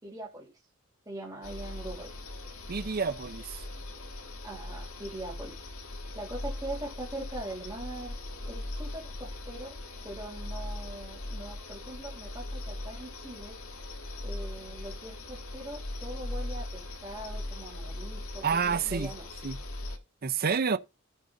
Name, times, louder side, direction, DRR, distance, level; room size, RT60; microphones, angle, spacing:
voice 1, 0.0-0.5 1.1-2.1 4.4-5.6 6.1-8.2 8.5-9.8 10.0-13.6 14.2-19.3, right 1 dB, 15° right, 3.8 m, -42 dB
sound 1, 1.4-20.0, left 2 dB, 75° left, 1.7 m, -40 dB
voice 2, 2.7-3.7 18.4-19.1 19.4-19.6 20.2-20.8, right 6 dB, 45° right, 0.7 m, -29 dB
14.0 x 5.5 x 3.8 m
head